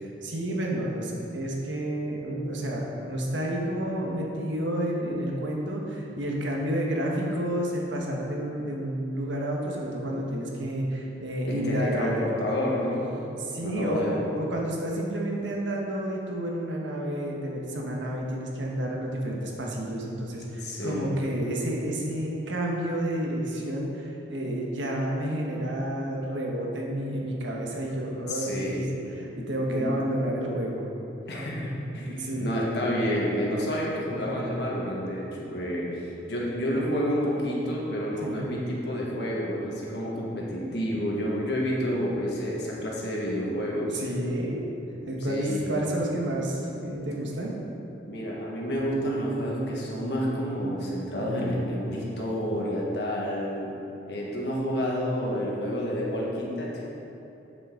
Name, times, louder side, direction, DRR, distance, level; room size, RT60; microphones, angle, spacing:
voice 1, 0.2-12.2 13.4-28.8 29.1-30.9 32.1-32.5 34.2-34.3 38.2-38.4 43.9-44.6 45.1-47.5, right 1 dB, 85° right, -1 dB, 1.4 m, -30 dB
voice 2, 11.4-14.3 20.6-21.2 28.3-28.9 29.7-29.9 31.3-44.0 45.2-45.8 48.1-53.7 54.1-56.9, equal, 65° left, -4 dB, 1.7 m, -29 dB
8.4 x 7.9 x 3.9 m, 2.9 s
head